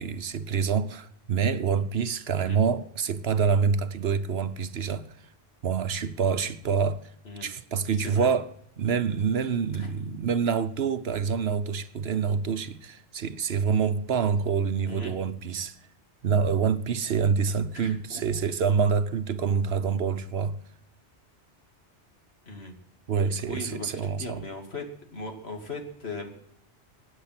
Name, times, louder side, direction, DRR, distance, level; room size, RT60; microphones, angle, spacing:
voice 1, 0.0-5.1 5.6-7.1 7.4-8.5 8.8-15.7 16.2-20.6 23.1-24.4, right 6 dB, 65° right, 1.0 m, -26 dB
voice 2, 8.0-8.3 9.7-9.9 14.9-15.1 17.7-18.4 22.5-22.8 23.2-24.9 25.1-26.3, left 2 dB, 65° left, 2.7 m, -39 dB
23.5 x 9.5 x 5.9 m
omnidirectional pair, 1.2 m